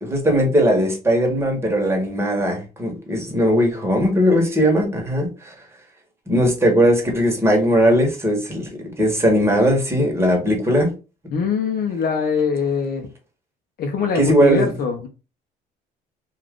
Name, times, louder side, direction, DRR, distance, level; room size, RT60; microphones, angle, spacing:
voice 1, 0.0-5.5 6.3-8.7 9.0-10.9 14.2-14.7, equal, 15° right, 1.2 m, -18 dB
voice 2, 11.3-13.1 13.8-15.1, left 5 dB, 60° left, 0.7 m, -22 dB
2.4 x 2.4 x 3.5 m
cardioid pair, 110°, 17 cm